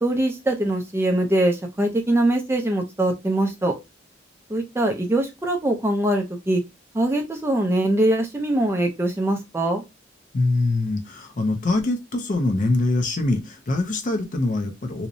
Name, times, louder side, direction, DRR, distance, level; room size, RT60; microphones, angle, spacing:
voice 1, 0.0-3.8 4.5-6.6 6.9-9.8, right 1 dB, 15° right, 0.4 m, -22 dB
voice 2, 10.3-15.1, left 2 dB, 45° left, 0.5 m, -23 dB
2.7 x 2.0 x 2.5 m
head